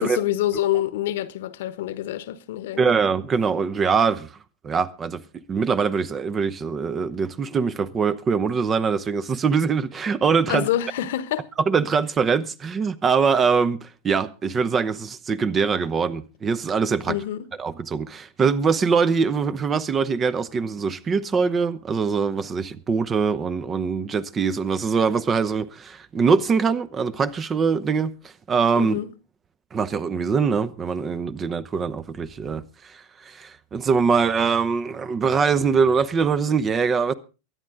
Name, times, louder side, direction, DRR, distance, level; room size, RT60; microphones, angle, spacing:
voice 1, 0.0-2.9 10.5-11.5 17.1-17.5 28.8-29.1, left 12 dB, 60° left, 1.1 m, -26 dB
voice 2, 2.8-4.3 4.6-10.7 11.7-17.2 17.6-29.0 29.7-37.1, right 5 dB, 25° right, 1.0 m, -23 dB
23.0 x 9.8 x 3.7 m
figure-of-eight pair, 85°, 0 cm